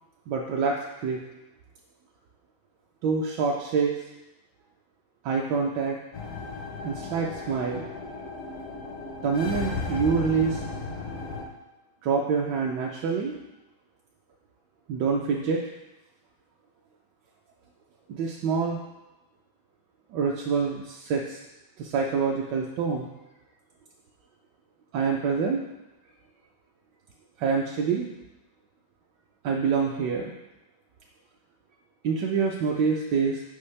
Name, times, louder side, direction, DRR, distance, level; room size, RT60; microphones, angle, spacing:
voice 1, 0.3-1.2 3.0-4.0 5.2-6.0 6.8-7.8 9.2-10.6 12.0-13.4 14.9-15.7 18.1-18.8 20.1-21.4 21.8-23.1 24.9-25.6 27.4-28.1 29.4-30.4 32.0-33.4, right 5 dB, 75° right, -1 dB, 1.0 m, -26 dB
sound 1, 6.1-11.4, left 3 dB, 70° left, 0.7 m, -35 dB
5.6 x 5.3 x 3.2 m, 0.98 s
omnidirectional pair, 2.3 m